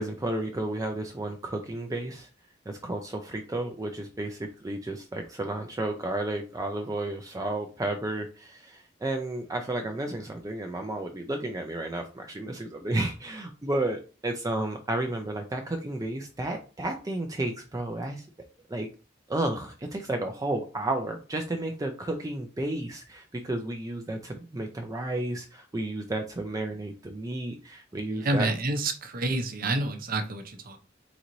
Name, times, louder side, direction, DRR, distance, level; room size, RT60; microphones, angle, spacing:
voice 1, 0.0-2.3 2.7-18.3 18.7-18.9 19.3-28.5, right 1 dB, 20° right, 4 dB, 0.5 m, -32 dB
voice 2, 28.2-30.8, right 2 dB, 50° right, 6 dB, 0.8 m, -28 dB
4.0 x 3.9 x 3.0 m, 0.34 s
head